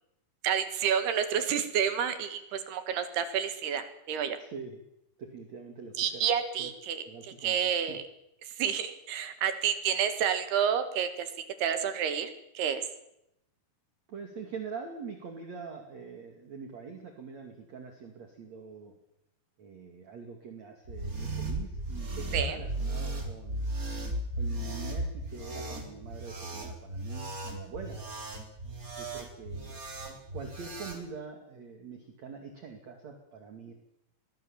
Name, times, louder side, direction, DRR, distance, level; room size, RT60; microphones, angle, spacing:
voice 1, 0.4-4.4 6.0-8.0 8.6-11.3 11.6-12.9 22.3-22.6, right 8 dB, 65° right, 10 dB, 3.5 m, -29 dB
voice 2, 4.4-4.8 5.2-6.3 6.6-6.7 7.0-8.0 14.1-18.9 19.6-23.6 24.4-28.0 29.0-29.8 30.1-33.7, right 5 dB, 45° right, 4 dB, 3.0 m, -44 dB
sound 1, 20.8-31.0, right 2 dB, 20° right, 2.8 m, -36 dB
23.0 x 19.5 x 7.4 m, 0.82 s
omnidirectional pair, 5.2 m